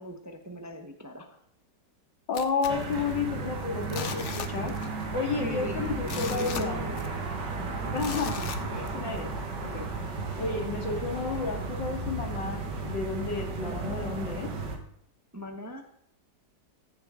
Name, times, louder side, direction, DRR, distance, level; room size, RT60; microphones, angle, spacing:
voice 1, 0.0-1.4 5.4-7.0 8.2-8.5 15.3-15.8, equal, 15° right, 5 dB, 0.7 m, -40 dB
voice 2, 2.3-4.7 5.1-6.8 7.9-8.3 8.6-9.3 9.6-9.9 10.4-14.5, left 5 dB, 85° left, 3 dB, 2.7 m, -31 dB
sound 1, 2.3-3.5 3.8-5.0 5.3-5.4 5.9-7.3 8.0-9.2 9.7-9.8, left 7 dB, 50° left, 0.9 m, -38 dB
sound 2, 2.7-14.8, right 3 dB, 75° right, 2.3 m, -34 dB
15.0 x 7.2 x 3.7 m, 0.71 s
omnidirectional pair, 1.9 m